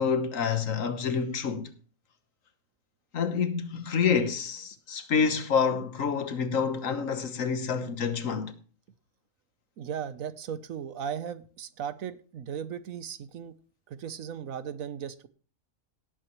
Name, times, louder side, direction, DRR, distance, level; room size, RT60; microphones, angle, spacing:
voice 1, 0.0-1.7 3.1-8.5, left 6 dB, 75° left, 1.5 m, -28 dB
voice 2, 9.8-13.5 13.9-15.3, right 8 dB, 80° right, 1.3 m, -37 dB
18.0 x 8.3 x 3.1 m
omnidirectional pair, 1.4 m